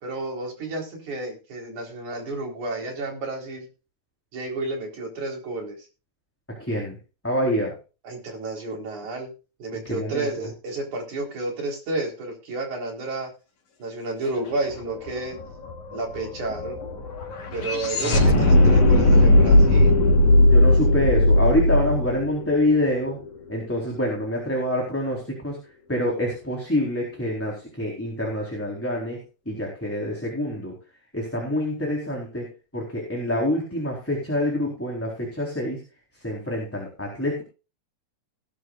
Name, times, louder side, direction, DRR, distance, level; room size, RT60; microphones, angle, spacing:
voice 1, 0.0-3.7 4.3-5.8 8.0-9.3 9.6-13.3 13.8-15.4 15.9-16.8 17.5-19.9, right 2 dB, 85° right, 2 dB, 5.7 m, -31 dB
voice 2, 6.5-7.0 7.2-7.7 9.7-10.5 18.0-18.8 20.4-23.2 23.5-25.6 25.9-29.2 29.5-30.8 31.1-32.5 32.7-35.8 36.2-37.4, left 1 dB, 5° left, -1 dB, 3.9 m, -26 dB
sound 1, 14.7-14.8 15.1-23.3, left 1 dB, 90° left, 4.5 m, -18 dB
19.5 x 11.5 x 2.5 m, 0.33 s
omnidirectional pair, 3.3 m